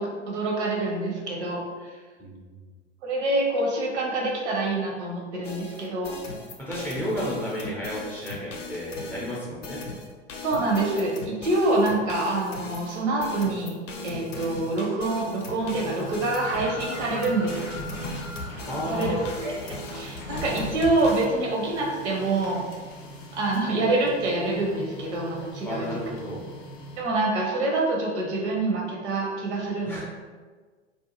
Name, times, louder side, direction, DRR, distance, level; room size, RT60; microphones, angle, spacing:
voice 1, 0.0-1.9 3.0-6.1 10.4-13.8 14.0-17.6 18.9-19.1 19.4-22.7 23.3-25.9 27.0-30.0, right 2 dB, 70° right, -1 dB, 0.8 m, -26 dB
voice 2, 2.2-2.6 6.6-9.8 18.7-19.2 25.6-26.4 29.9-30.0, equal, 5° left, -7 dB, 0.3 m, -32 dB
sound 1, 5.4-21.2, left 2 dB, 85° left, 0.6 m, -38 dB
Printer, 15.2-27.3, left 1 dB, 45° left, 0.6 m, -41 dB
sound 2, 16.3-20.6, equal, 90° right, 1.4 m, -40 dB
2.6 x 2.2 x 2.9 m, 1.4 s
figure-of-eight pair, 95°, 36 cm